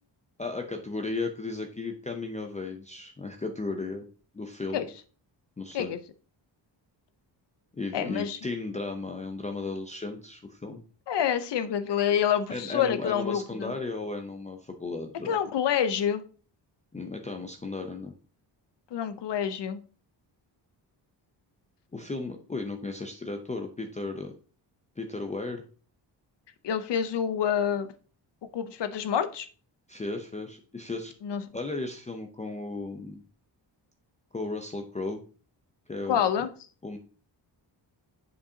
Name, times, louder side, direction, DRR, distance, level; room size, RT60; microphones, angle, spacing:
voice 1, 0.4-4.0 4.3-4.9 5.6-5.9 7.7-10.8 12.5-15.4 16.9-18.1 21.9-24.3 25.0-25.6 29.9-31.1 31.5-33.2 34.3-35.2 35.9-36.5 36.8-37.0, left 3 dB, 15° left, 0.5 m, -35 dB
voice 2, 7.9-8.4 11.1-13.7 15.2-16.2 18.9-19.8 26.6-27.9 28.5-29.5 31.2-31.4 36.1-36.5, left 8 dB, 70° left, 0.7 m, -27 dB
6.9 x 5.2 x 2.7 m
wide cardioid pair, 130°, 44 cm